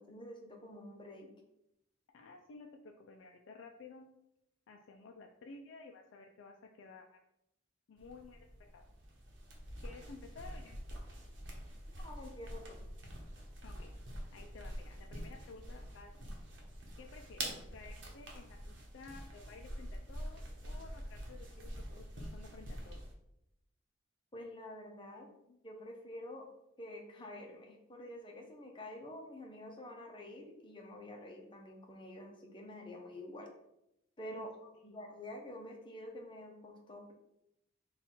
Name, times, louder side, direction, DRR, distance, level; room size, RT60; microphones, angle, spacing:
voice 1, 0.0-1.3 12.0-12.8 24.3-26.5 26.8-33.5 34.2-37.1, left 1 dB, 25° left, 1 dB, 0.6 m, -48 dB
voice 2, 2.1-4.1 4.7-7.2 7.9-8.5 8.7-8.9 9.8-11.0 13.6-13.9 14.3-16.3 17.0-23.0 34.3-34.5 34.8-35.0, left 4 dB, 70° left, 2 dB, 0.3 m, -54 dB
sound 1, 8.0-23.1, right 1 dB, 65° right, 1.0 m, -46 dB
4.2 x 2.4 x 4.2 m, 0.84 s
head